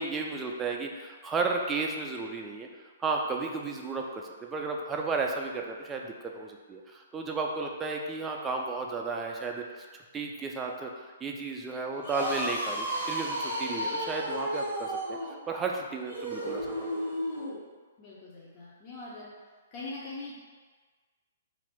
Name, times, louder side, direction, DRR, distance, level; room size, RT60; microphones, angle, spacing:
voice 1, 0.0-2.7 3.0-9.9 10.1-15.2 15.5-16.9, right 4 dB, 15° right, 1 dB, 0.3 m, -33 dB
sound 1, 11.9-17.6, equal, 85° left, 1.3 m, -33 dB
voice 2, 18.0-19.3 19.7-20.4, left 2 dB, 35° left, -7 dB, 0.6 m, -42 dB
2.6 x 2.5 x 3.5 m, 1.4 s
figure-of-eight pair, 120°, 0 cm